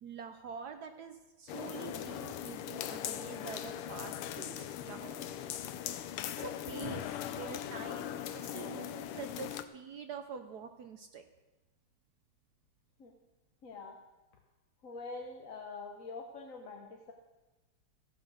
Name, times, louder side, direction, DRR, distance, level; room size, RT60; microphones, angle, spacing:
voice 1, 0.0-5.2 5.9-11.2, right 6 dB, 65° right, 7 dB, 1.0 m, -46 dB
sound 1, 1.5-9.6, left 10 dB, 90° left, 1.6 m, -40 dB
voice 2, 13.6-14.0 14.8-17.1, left 3 dB, 45° left, 2 dB, 1.2 m, -45 dB
14.5 x 8.3 x 6.3 m, 1.1 s
omnidirectional pair, 2.4 m